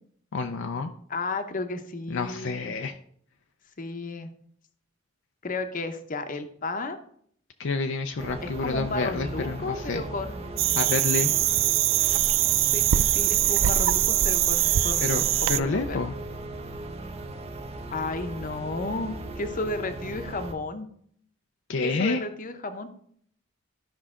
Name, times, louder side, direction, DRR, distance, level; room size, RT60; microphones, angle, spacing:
voice 1, 0.3-0.9 2.1-2.9 7.6-10.0 10.7-11.3 15.0-15.2 15.5-16.1 21.7-22.2, left 3 dB, 65° left, 5 dB, 0.5 m, -28 dB
voice 2, 1.1-2.7 3.8-4.3 5.4-7.0 8.4-10.9 12.7-16.0 17.9-20.9 21.8-22.9, left 3 dB, 40° left, 8 dB, 0.8 m, -33 dB
sound 1, 8.2-20.5, right 2 dB, 30° right, 0.8 m, -38 dB
sound 2, 10.6-15.6, right 13 dB, 70° right, 0.4 m, -22 dB
13.0 x 5.5 x 3.7 m, 0.64 s
head